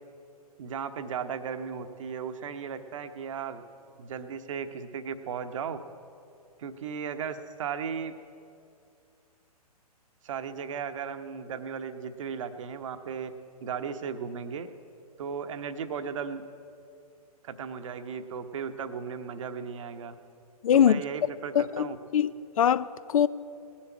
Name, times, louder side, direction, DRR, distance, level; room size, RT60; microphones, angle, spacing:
voice 1, 0.6-3.6 4.0-5.8 6.6-8.1 10.2-13.3 13.6-14.7 15.2-16.4 17.4-20.1 20.7-22.0, right 6 dB, 55° right, 0.9 m, -36 dB
voice 2, 20.6-21.0 21.5-21.9 22.1-23.3, left 9 dB, 60° left, 0.5 m, -22 dB
18.5 x 7.4 x 8.5 m
figure-of-eight pair, 125°, 20 cm